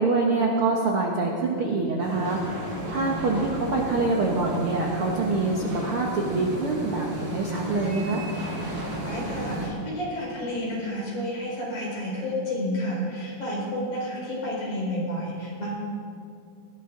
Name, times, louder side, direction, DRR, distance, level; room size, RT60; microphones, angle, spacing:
voice 1, 0.0-2.6 2.9-8.2, right 3 dB, 55° right, -2 dB, 1.6 m, -25 dB
sound 1, 2.0-9.7, right 1 dB, 85° right, 6.1 m, -33 dB
voice 2, 9.0-15.7, left 1 dB, 55° left, -5 dB, 6.3 m, -30 dB
20.0 x 16.5 x 3.9 m, 2.4 s
omnidirectional pair, 4.0 m